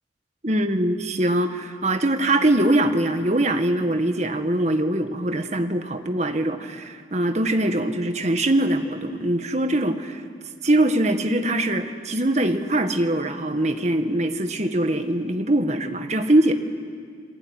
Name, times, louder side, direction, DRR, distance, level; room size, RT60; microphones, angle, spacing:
voice 1, 0.4-10.2 10.6-16.5, right 1 dB, 40° right, 7 dB, 1.7 m, -22 dB
28.0 x 22.0 x 9.6 m, 2.1 s
head